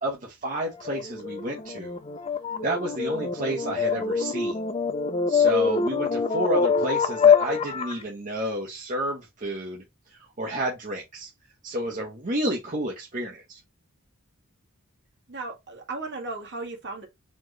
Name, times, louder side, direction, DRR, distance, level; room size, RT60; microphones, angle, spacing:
voice 1, 0.0-2.0 2.6-4.6 5.3-9.8 10.1-11.3 11.6-13.6, right 1 dB, 40° right, 1.0 m, -30 dB
sound 1, 0.7-8.0, left 6 dB, 25° left, 0.4 m, -24 dB
voice 2, 15.3-17.1, right 3 dB, 55° right, 1.6 m, -35 dB
4.3 x 3.0 x 3.1 m
head